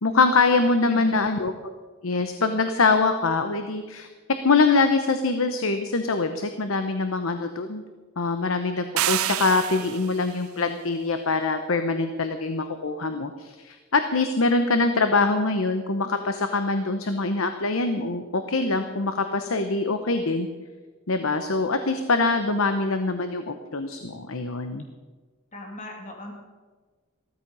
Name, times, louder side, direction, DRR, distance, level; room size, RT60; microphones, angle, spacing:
voice 1, 0.0-1.5 2.0-4.1 4.4-7.8 8.2-20.5 21.1-24.8, left 3 dB, 75° left, 8 dB, 0.9 m, -24 dB
voice 2, 0.7-1.3 25.5-26.3, left 1 dB, 35° left, 1 dB, 2.7 m, -39 dB
sound 1, 9.0-10.2, right 14 dB, 90° right, 0.4 m, -27 dB
15.0 x 13.5 x 5.4 m, 1.4 s
head